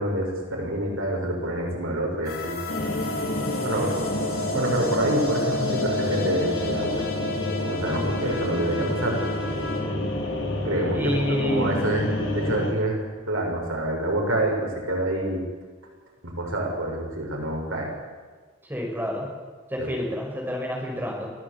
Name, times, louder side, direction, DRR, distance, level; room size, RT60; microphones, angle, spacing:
voice 1, 0.0-2.6 3.6-3.9 4.5-7.0 7.6-9.2 10.6-11.1 11.4-13.0 13.3-15.5 16.2-17.9 19.8-20.0, right 1 dB, 75° right, 0 dB, 6.6 m, -27 dB
sound 1, 2.2-9.8, left 2 dB, 85° left, 7.9 m, -31 dB
sound 2, 2.7-12.7, left 1 dB, 60° left, 4.9 m, -29 dB
voice 2, 3.5-4.0 10.9-11.8 18.7-19.3 19.7-21.3, equal, 10° right, -1 dB, 5.9 m, -29 dB
23.0 x 17.0 x 8.6 m, 1.5 s
head